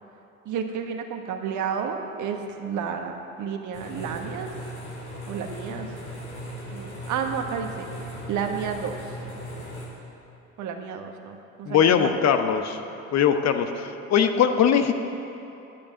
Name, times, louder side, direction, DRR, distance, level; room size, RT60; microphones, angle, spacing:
voice 1, 0.4-4.5 5.3-5.9 6.7-9.2 10.6-12.2, right 7 dB, 45° right, 4 dB, 1.5 m, -31 dB
sound 1, 3.7-9.9, equal, 90° left, 3.5 m, -38 dB
voice 2, 11.7-12.8 13.1-14.9, left 8 dB, 40° left, 7 dB, 1.0 m, -21 dB
10.5 x 8.6 x 9.2 m, 2.9 s
hypercardioid pair, 70°, 41 cm